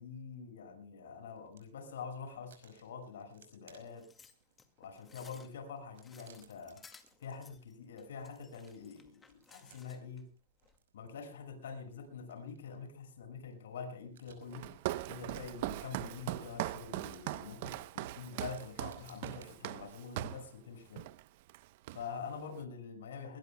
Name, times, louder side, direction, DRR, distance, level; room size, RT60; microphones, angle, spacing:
voice 1, 0.0-4.1 4.8-6.8 7.2-10.3 10.9-14.7 15.1-21.1 21.9-23.4, left 5 dB, 85° left, 6 dB, 6.0 m, -46 dB
sound 1, 1.1-1.8 2.1-19.5, right 8 dB, 85° right, 5.2 m, -67 dB
sound 2, 3.9-10.2 10.6-10.8, left 5 dB, 15° left, 2.0 m, -60 dB
Walk footsteps, 14.5-20.5 21.0-21.2 21.5-22.3, right 16 dB, 55° right, 0.8 m, -40 dB
22.5 x 20.5 x 2.2 m, 0.37 s
supercardioid pair, 145°, 0 cm